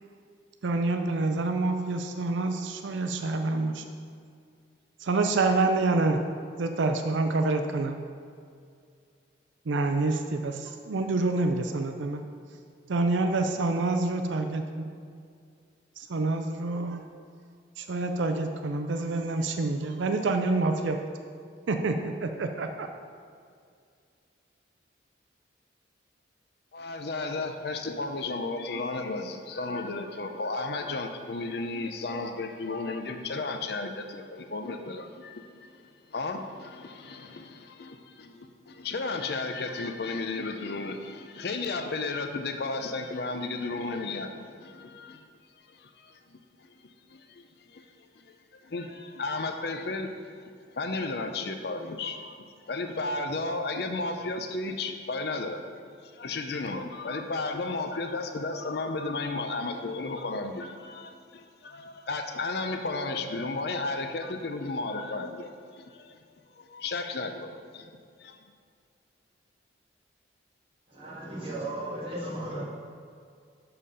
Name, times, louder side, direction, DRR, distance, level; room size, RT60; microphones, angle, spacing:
voice 1, 0.6-3.8 5.0-6.2 6.6-8.0 9.7-12.2 12.9-14.9 16.0-17.0 17.8-21.0 21.7-22.9, right 3 dB, 80° right, 6 dB, 0.5 m, -27 dB
voice 2, 26.7-35.8 36.1-45.2 45.7-47.9 48.2-48.3 48.6-50.1 50.7-52.4 52.7-55.6 56.1-66.2 66.6-67.5 67.7-67.9 68.2-68.4, left 3 dB, 55° left, 6 dB, 0.5 m, -34 dB
voice 3, 70.9-72.6, right 1 dB, 30° right, -7 dB, 2.0 m, -35 dB
6.6 x 5.6 x 5.5 m, 2.2 s
head